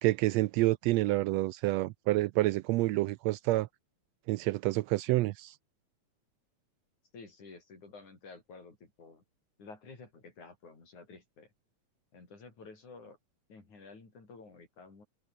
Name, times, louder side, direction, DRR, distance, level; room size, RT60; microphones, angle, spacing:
voice 1, 0.0-3.7 4.3-5.5, right 18 dB, 80° right, 1.6 m, -28 dB
voice 2, 7.1-9.2 9.6-11.5 12.1-13.2 13.5-15.1, left 4 dB, 80° left, 7.8 m, -51 dB
omnidirectional pair, 3.3 m